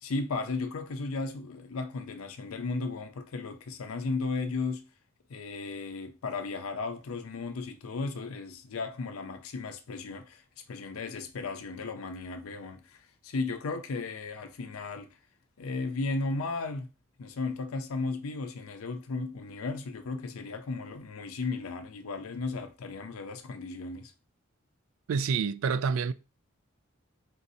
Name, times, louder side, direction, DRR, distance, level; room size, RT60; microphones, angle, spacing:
voice 1, 0.0-4.9 5.3-10.4 10.7-15.1 15.6-16.9 17.2-24.1, left 3 dB, 90° left, 0.5 m, -35 dB
voice 2, 25.1-26.1, right 5 dB, 80° right, 0.3 m, -27 dB
3.8 x 2.7 x 4.0 m
head